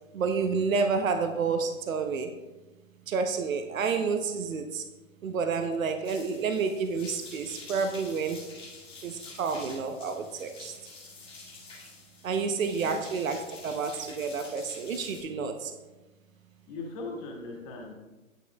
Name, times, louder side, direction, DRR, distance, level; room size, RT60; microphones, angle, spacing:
voice 1, 0.1-2.3 3.1-4.8 5.2-8.4 9.0-10.7 12.2-15.7, right 5 dB, 70° right, 6 dB, 0.9 m, -29 dB
sound 1, 6.0-15.2, left 3 dB, 10° left, 1.5 m, -47 dB
voice 2, 16.7-17.9, left 3 dB, 25° left, -1 dB, 1.6 m, -39 dB
9.2 x 7.9 x 2.3 m, 1.1 s
hypercardioid pair, 145°, 42 cm